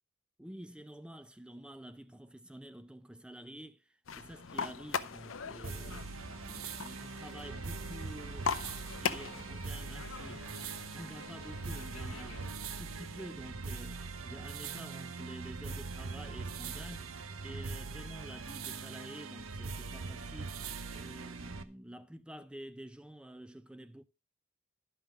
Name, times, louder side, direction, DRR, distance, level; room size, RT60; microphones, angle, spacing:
voice 1, 0.4-20.6 20.9-24.0, right 1 dB, 5° right, 0.4 m, -49 dB
sound 1, 4.0-12.5, left 6 dB, 75° left, 0.7 m, -41 dB
sound 2, 5.6-21.6, right 4 dB, 90° right, 0.9 m, -42 dB
11.5 x 5.7 x 5.2 m
head